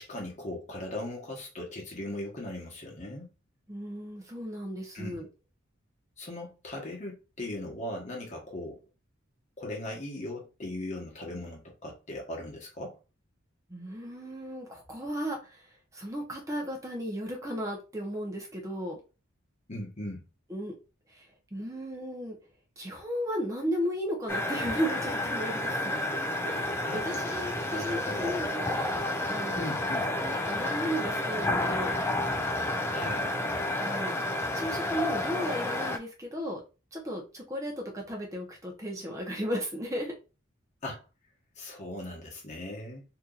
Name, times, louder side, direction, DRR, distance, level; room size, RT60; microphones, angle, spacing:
voice 1, 0.0-3.3 4.9-5.2 6.2-8.8 9.6-13.0 19.7-20.2 26.8-27.0 27.7-28.3 29.6-30.0 32.9-33.3 40.8-41.0 41.6-43.0, left 1 dB, 35° left, -1 dB, 1.1 m, -38 dB
voice 2, 3.7-5.3 13.7-15.6 15.9-19.0 20.5-20.7 21.1-21.3 21.5-22.4 22.8-26.0 26.4-28.9 29.2-29.7 30.2-32.0 33.8-34.1 34.6-36.6 36.9-40.1, equal, 15° right, 0 dB, 0.9 m, -35 dB
sound 1, 24.3-36.0, left 1 dB, 10° left, 0.3 m, -30 dB
2.9 x 2.6 x 3.7 m, 0.31 s
head